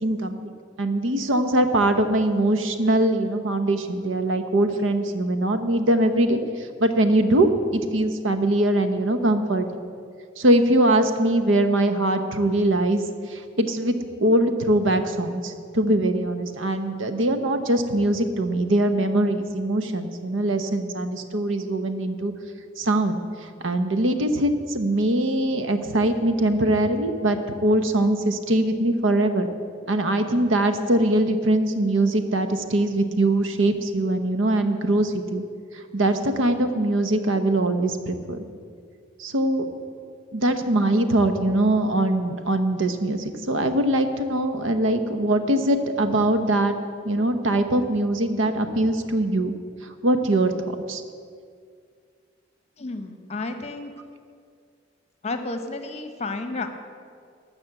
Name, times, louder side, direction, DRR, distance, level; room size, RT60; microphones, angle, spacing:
voice 1, 0.0-0.5 0.8-9.8 10.4-22.3 22.8-29.5 29.9-35.4 35.7-38.4 39.2-39.7 40.3-46.7 47.0-49.5 50.0-50.5 50.9-51.0, right 1 dB, 90° right, 8 dB, 0.9 m, -22 dB
voice 2, 52.8-53.9 55.2-56.7, left 3 dB, 35° left, 7 dB, 0.9 m, -31 dB
13.0 x 6.1 x 7.9 m, 2.1 s
head